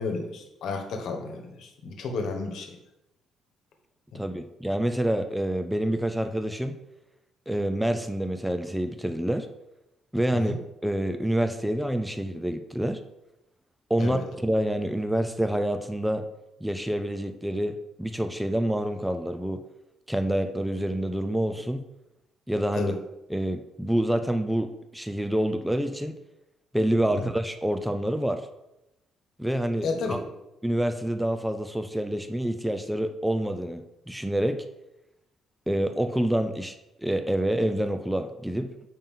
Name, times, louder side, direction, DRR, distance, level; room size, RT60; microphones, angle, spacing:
voice 1, 0.0-2.8 4.1-4.2 10.3-10.6 14.0-14.2 22.8-23.0 27.1-27.3 29.8-30.2, left 4 dB, 65° left, 5 dB, 1.2 m, -32 dB
voice 2, 4.1-6.8 7.5-9.5 10.1-10.5 10.8-13.0 13.9-16.3 16.6-19.6 20.1-21.8 22.5-23.0 23.3-26.2 26.7-28.5 29.4-30.2 30.6-34.7 35.7-38.7, right 1 dB, 5° right, 8 dB, 0.4 m, -27 dB
7.2 x 5.4 x 3.7 m, 0.92 s
cardioid pair, 145°, 0 cm